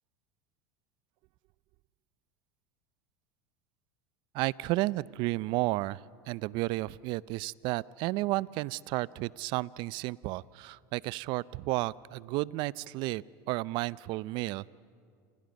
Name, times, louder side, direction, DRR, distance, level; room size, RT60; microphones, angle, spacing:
voice 1, 4.3-6.0 6.3-14.7, right 19 dB, 55° right, 21 dB, 0.5 m, -32 dB
29.0 x 28.5 x 5.3 m, 2.2 s
hypercardioid pair, 95°, 9 cm